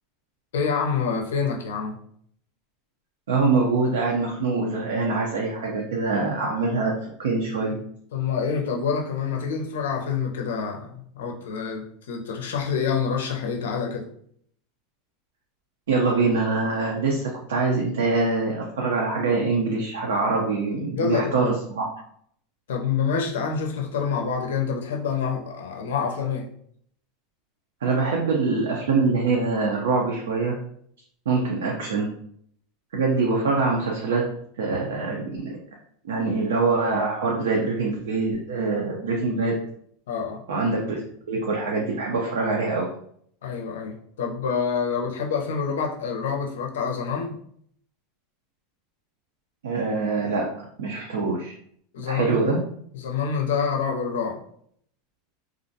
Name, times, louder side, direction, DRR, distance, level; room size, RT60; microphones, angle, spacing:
voice 1, 0.5-2.0 8.1-14.1 20.9-21.5 22.7-26.5 40.1-40.4 43.4-47.4 51.9-52.5 52.9-54.4, left 6 dB, 85° left, 1 dB, 0.5 m, -27 dB
voice 2, 3.3-6.9 7.2-7.8 15.9-21.9 27.8-30.6 31.3-32.1 32.9-34.3 34.6-35.6 36.0-39.6 40.5-42.9 49.6-50.5 50.8-51.5 52.1-52.6, right 3 dB, 90° right, -1 dB, 0.4 m, -24 dB
2.4 x 2.1 x 2.6 m, 0.65 s
hypercardioid pair, 110°, 0 cm